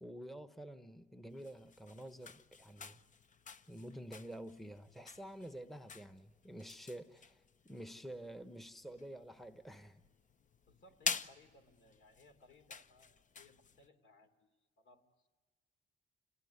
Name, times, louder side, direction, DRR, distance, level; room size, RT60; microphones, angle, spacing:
voice 1, 0.0-3.0 3.7-10.0, right 1 dB, ahead, 1.0 m, -49 dB
sound 1, 1.3-13.9, left 5 dB, 40° left, 0.8 m, -48 dB
voice 2, 10.7-15.3, left 2 dB, 65° left, 3.2 m, -64 dB
28.0 x 19.0 x 9.5 m
cardioid pair, 90°, 20 cm